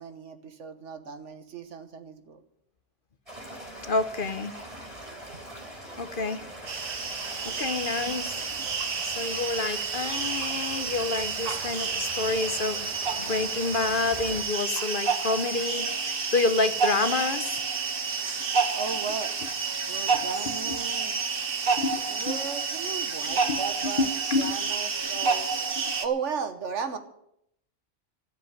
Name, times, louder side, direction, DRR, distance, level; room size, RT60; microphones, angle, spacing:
voice 1, 0.0-2.4 18.7-19.3 19.9-21.2 22.1-24.1 24.4-25.5 25.8-27.0, right 6 dB, 70° right, 8 dB, 1.6 m, -35 dB
sound 1, 3.3-14.4, right 1 dB, 25° right, 4.4 m, -42 dB
voice 2, 3.9-4.5 6.0-6.4 7.4-12.9 13.2-17.5 20.5-20.8 21.8-22.4 23.4-24.5 25.8-25.9, left 3 dB, 50° left, 11 dB, 0.9 m, -29 dB
sound 2, 6.7-26.1, right 5 dB, 50° right, 1.2 m, -30 dB
sound 3, 15.7-26.0, equal, 70° left, 2.0 m, -48 dB
13.5 x 7.7 x 10.0 m, 0.77 s
omnidirectional pair, 1.3 m